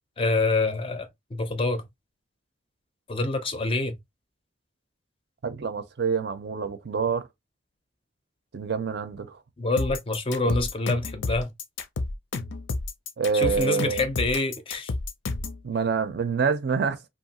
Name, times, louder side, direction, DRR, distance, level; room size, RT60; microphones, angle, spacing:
voice 1, 0.2-1.8 3.1-4.0 9.6-11.5 13.3-14.9, left 2 dB, 30° left, 0.4 m, -26 dB
voice 2, 5.4-7.3 8.5-9.4 10.4-10.6 13.2-14.0 15.6-17.0, right 5 dB, 55° right, 0.4 m, -26 dB
sound 1, 9.8-15.6, left 3 dB, 80° left, 0.5 m, -31 dB
2.8 x 2.3 x 2.8 m
head